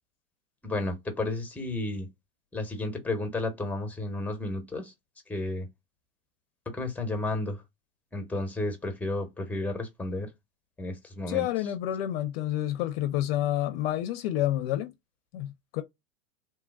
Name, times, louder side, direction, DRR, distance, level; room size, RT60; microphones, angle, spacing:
voice 1, 0.6-2.1 2.5-4.9 5.3-5.7 6.7-7.6 8.1-10.3 10.8-11.5, left 2 dB, 5° left, 1.0 m, -32 dB
voice 2, 11.3-14.9 15.3-15.8, left 13 dB, 50° left, 0.6 m, -29 dB
3.3 x 2.2 x 2.2 m
hypercardioid pair, 95°, 38 cm